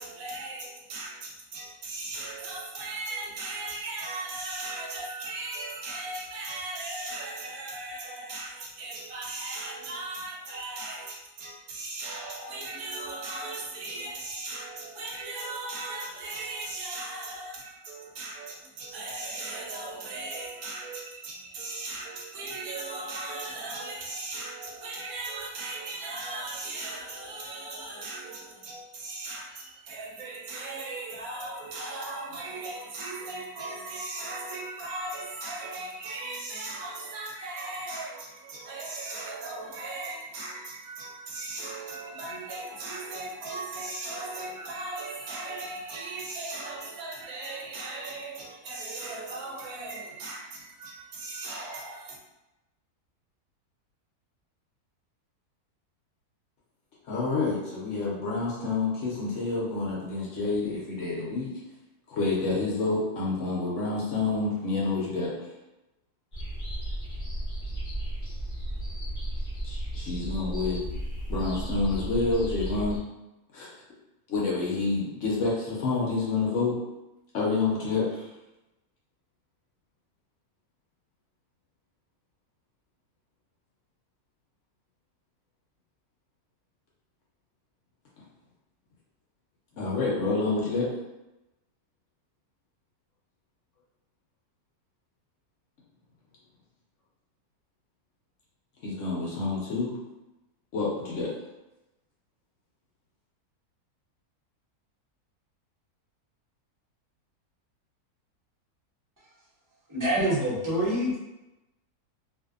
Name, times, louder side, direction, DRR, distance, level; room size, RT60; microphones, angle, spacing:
voice 1, 0.0-52.2, right 2 dB, 70° right, -2 dB, 1.0 m, -37 dB
voice 2, 57.1-61.5 62.1-65.3 69.6-70.8 71.3-73.0 73.5-73.7 74.3-76.8 77.3-78.2 89.8-90.9 98.8-100.0 100.7-101.3, left 3 dB, 65° left, -5 dB, 0.9 m, -28 dB
sound 1, 66.3-73.0, right 1 dB, 30° left, 0.8 m, -34 dB
voice 3, 109.9-111.2, right 1 dB, 20° right, -8 dB, 0.5 m, -26 dB
2.6 x 2.5 x 2.4 m, 0.96 s
omnidirectional pair, 1.6 m